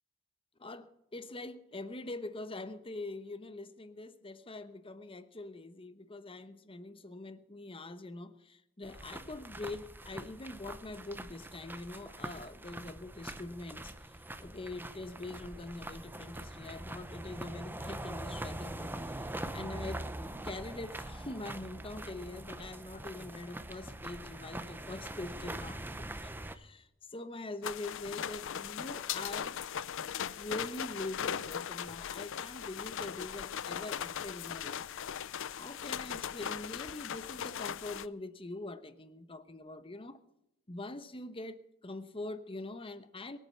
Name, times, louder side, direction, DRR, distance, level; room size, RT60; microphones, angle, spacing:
voice 1, 0.6-20.0 20.4-25.8 26.2-29.6 30.4-34.9 35.6-40.2 40.7-43.4, left 2 dB, 25° left, 1.0 m, -44 dB
sound 1, 8.8-26.5, right 1 dB, 10° right, 0.7 m, -43 dB
sound 2, 27.6-38.1, left 8 dB, 60° left, 0.5 m, -39 dB
22.5 x 8.4 x 5.8 m
head